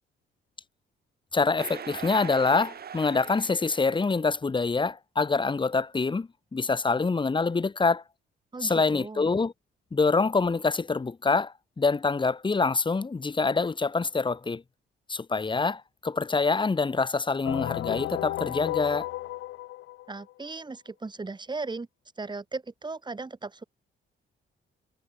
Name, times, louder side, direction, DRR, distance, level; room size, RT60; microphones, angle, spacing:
voice 1, 1.3-8.0 8.6-9.5 9.9-14.6 15.1-19.1, left 4 dB, 25° left, 1.7 m, -26 dB
sound 1, 1.6-4.1, right 8 dB, 50° right, 3.2 m, -41 dB
voice 2, 8.5-9.3 20.1-21.9 22.2-23.6, right 3 dB, 20° right, 3.3 m, -37 dB
sound 2, 17.4-20.3, left 16 dB, 90° left, 1.4 m, -33 dB
cardioid pair, 90°, 20 cm